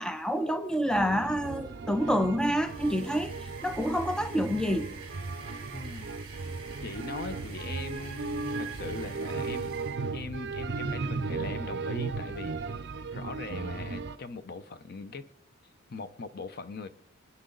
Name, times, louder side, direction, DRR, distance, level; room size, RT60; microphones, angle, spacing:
voice 1, 0.0-4.9, equal, 5° left, 0.6 m, -28 dB
sound 1, 0.9-14.2, right 4 dB, 55° right, 0.6 m, -36 dB
sound 2, 2.4-10.2, right 4 dB, 25° right, 3.7 m, -49 dB
voice 2, 5.7-6.1 6.8-9.7 10.1-12.9 13.1-15.3 15.9-16.9, left 3 dB, 45° left, 0.7 m, -41 dB
26.5 x 10.0 x 3.9 m
head